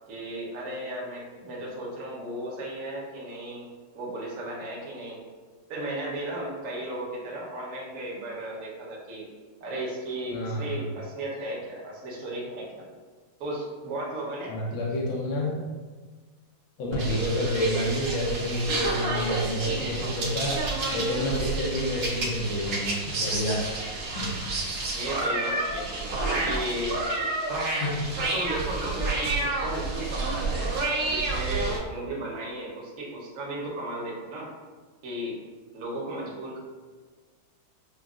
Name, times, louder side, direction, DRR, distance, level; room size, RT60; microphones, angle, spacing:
voice 1, 0.1-3.7 3.9-5.3 5.7-9.3 9.6-12.9 13.4-14.6 24.9-27.0 28.2-30.7 31.0-34.5 35.0-35.4 35.7-36.6, right 1 dB, 50° right, -4 dB, 1.1 m, -35 dB
voice 2, 10.3-10.6 14.5-15.6 16.8-23.7 24.1-24.4 27.8-28.1, left 1 dB, 75° left, -4 dB, 1.4 m, -29 dB
sound 1, 16.9-31.8, right 2 dB, 65° right, 1.4 m, -29 dB
6.2 x 2.2 x 2.4 m, 1.4 s
omnidirectional pair, 2.2 m